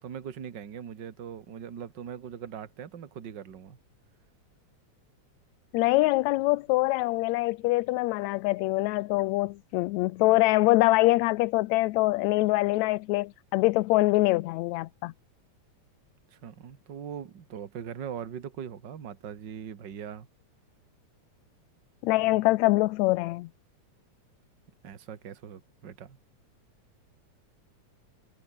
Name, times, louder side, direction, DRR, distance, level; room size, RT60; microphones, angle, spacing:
voice 1, 0.0-3.8 16.3-20.3 24.8-26.2, right 8 dB, 40° right, 2.1 m, -40 dB
voice 2, 5.7-15.1 22.0-23.5, left 20 dB, 80° left, 1.8 m, -24 dB
omnidirectional pair, 3.4 m